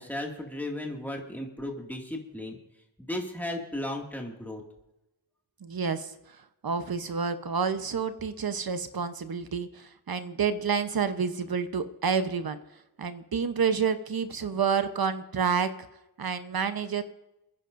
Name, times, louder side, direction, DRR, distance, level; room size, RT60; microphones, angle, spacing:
voice 1, 0.0-2.6 3.0-4.6, left 1 dB, 5° left, 0 dB, 2.2 m, -35 dB
voice 2, 5.6-12.6 13.0-15.7 16.2-17.0, right 6 dB, 55° right, 10 dB, 1.0 m, -29 dB
30.0 x 10.5 x 2.6 m, 0.94 s
wide cardioid pair, 90°, 43 cm